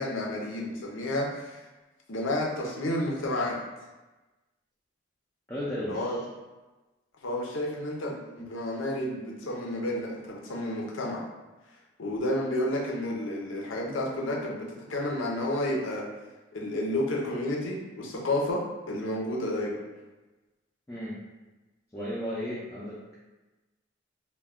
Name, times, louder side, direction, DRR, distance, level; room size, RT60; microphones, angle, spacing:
voice 1, 0.0-1.6 2.1-3.6 5.9-6.2 7.2-11.2 12.0-16.1 16.5-19.8, left 1 dB, 80° left, -2 dB, 0.6 m, -31 dB
voice 2, 5.5-6.2 20.9-21.2 21.9-23.1, equal, 15° left, -8 dB, 0.4 m, -34 dB
2.2 x 2.2 x 3.4 m, 1.1 s
head